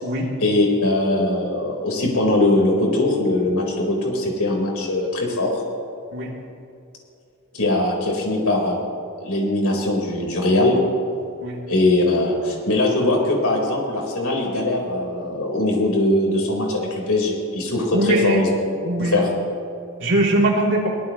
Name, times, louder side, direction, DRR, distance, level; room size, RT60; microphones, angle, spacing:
voice 1, 0.4-5.6 7.6-8.8 9.2-10.8 11.7-18.5 19.0-19.3, left 2 dB, 75° left, -1 dB, 4.2 m, -21 dB
voice 2, 17.9-18.4 18.8-19.3 20.0-20.9, right 1 dB, 55° right, -3 dB, 3.1 m, -21 dB
23.5 x 18.5 x 3.1 m, 2.5 s
head